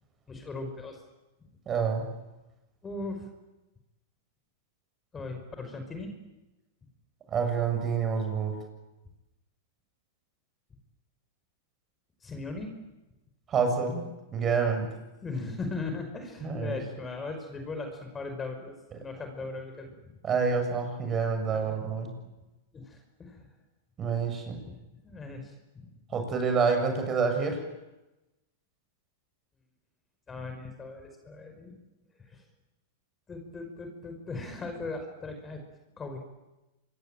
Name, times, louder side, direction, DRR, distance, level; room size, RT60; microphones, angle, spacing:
voice 1, 0.3-1.0 2.8-3.3 5.1-6.1 12.2-12.7 15.2-18.7 19.0-20.1 21.5-21.8 22.7-23.4 24.5-24.8 25.0-25.5 25.8-25.9 30.3-31.7 32.3-32.4 33.3-35.6 36.0-36.2, left 3 dB, 20° left, 6 dB, 5.4 m, -38 dB
voice 2, 1.7-2.1 7.3-8.6 13.5-14.9 16.4-16.8 20.2-22.2 24.0-24.6 26.1-27.6, right 5 dB, 25° right, 6 dB, 7.2 m, -28 dB
26.5 x 22.5 x 9.2 m, 1.0 s
hypercardioid pair, 110°, 0 cm